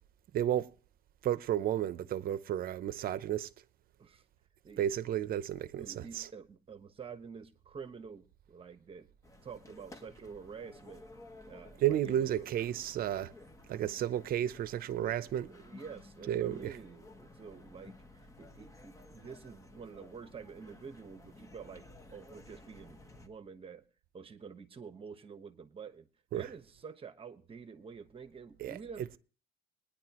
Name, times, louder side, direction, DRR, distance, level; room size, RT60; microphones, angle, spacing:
voice 1, 0.3-0.7 1.2-3.5 4.8-6.3 11.8-13.3 13.7-15.5 16.3-16.8 26.3-26.5 28.6-28.8, right 11 dB, 60° right, 0.7 m, -32 dB
voice 2, 5.7-9.1 9.4-11.0 11.5-12.5 15.4-17.9 18.4-23.8 24.1-26.1 26.3-29.2, right 6 dB, 35° right, 1.2 m, -48 dB
sound 1, 9.2-23.3, left 2 dB, 20° left, 1.4 m, -54 dB
21.0 x 10.0 x 3.0 m
cardioid pair, 110°, 17 cm